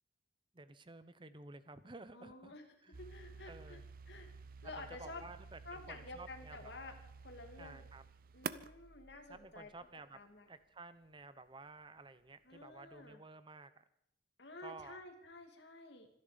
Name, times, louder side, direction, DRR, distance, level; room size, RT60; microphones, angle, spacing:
voice 1, 0.5-2.5 2.8-2.9 3.5-3.8 4.8-6.7 7.6-8.0 9.3-10.2 10.5-13.7 14.6-15.0, right 3 dB, 25° right, 13 dB, 0.9 m, -53 dB
voice 2, 2.1-3.8 4.1-4.3 4.6-5.2 5.6-7.0 7.2-7.9 8.3-9.7 10.1-10.5 12.4-13.2 14.4-16.1, left 2 dB, 65° left, 4 dB, 2.6 m, -51 dB
sound 1, 2.9-9.9, right 5 dB, 50° right, 0.6 m, -50 dB
25.0 x 11.0 x 5.2 m, 0.73 s
head